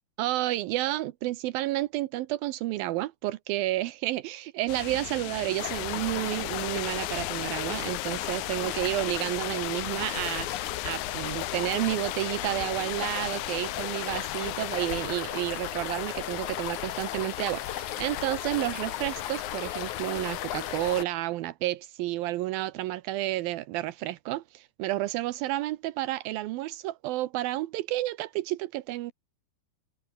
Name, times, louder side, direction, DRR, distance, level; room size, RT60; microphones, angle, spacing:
voice 1, 0.2-29.1, right 16 dB, 80° right, 2.6 m, -31 dB
sound 1, 4.7-15.1, left 21 dB, 80° left, 1.9 m, -38 dB
sound 2, 5.6-21.0, left 13 dB, 65° left, 2.3 m, -35 dB
omnidirectional pair, 4.2 m